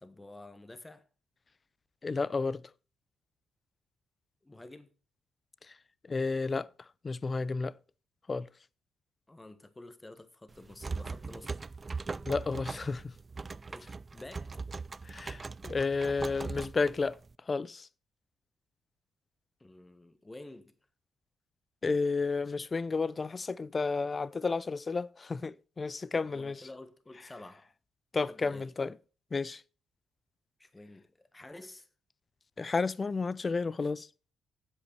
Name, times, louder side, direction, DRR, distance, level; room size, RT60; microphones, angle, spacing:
voice 1, 0.0-1.1 4.4-4.9 9.3-11.6 13.7-14.6 19.6-20.7 26.3-27.7 28.2-28.7 30.6-31.9, left 2 dB, 15° left, 1.5 m, -50 dB
voice 2, 2.0-2.6 6.1-6.7 7.0-7.7 8.3-8.5 12.2-13.1 15.1-17.2 17.5-17.9 21.8-26.6 28.1-28.9 29.3-29.6 32.6-34.1, left 4 dB, 30° left, 0.5 m, -31 dB
sound 1, 10.5-17.3, right 4 dB, 30° right, 0.4 m, -40 dB
8.4 x 7.9 x 6.7 m
cardioid pair, 90°, 0 cm